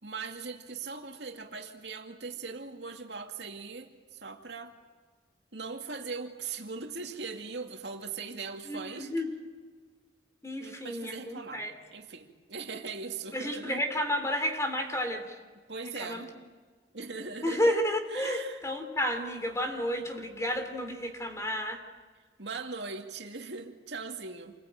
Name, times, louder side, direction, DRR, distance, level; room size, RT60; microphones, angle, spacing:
voice 1, 0.0-4.7 5.5-9.1 10.6-11.6 11.9-13.8 15.7-16.3 16.9-17.7 18.1-18.6 22.4-24.5, right 4 dB, 70° right, 3 dB, 2.4 m, -40 dB
voice 2, 8.6-9.3 10.4-11.7 13.3-15.3 16.0-16.2 17.4-21.8, equal, 15° left, 5 dB, 3.2 m, -31 dB
28.0 x 21.5 x 9.0 m, 1.5 s
head